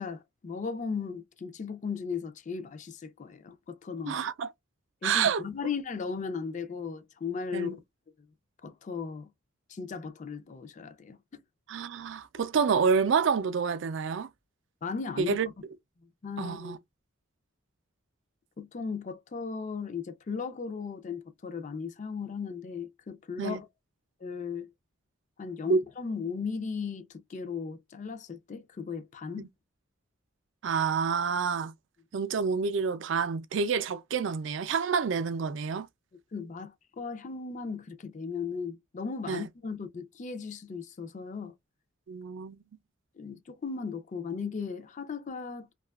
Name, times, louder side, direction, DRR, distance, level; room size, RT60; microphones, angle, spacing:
voice 1, 0.0-4.2 5.0-7.7 8.6-9.3 9.7-11.2 14.8-15.3 16.2-16.8 18.6-23.7 24.2-24.7 25.4-29.5 36.3-41.5 43.2-45.7, left 5 dB, 35° left, 0.4 m, -36 dB
voice 2, 4.1-4.5 5.0-5.4 7.5-7.8 11.7-14.3 15.2-15.5 16.4-16.8 23.4-23.6 25.7-25.8 29.4-29.5 30.6-31.7 32.1-35.9 39.3-39.5 42.1-42.6, right 5 dB, 65° right, 0.4 m, -28 dB
2.7 x 2.3 x 2.2 m
head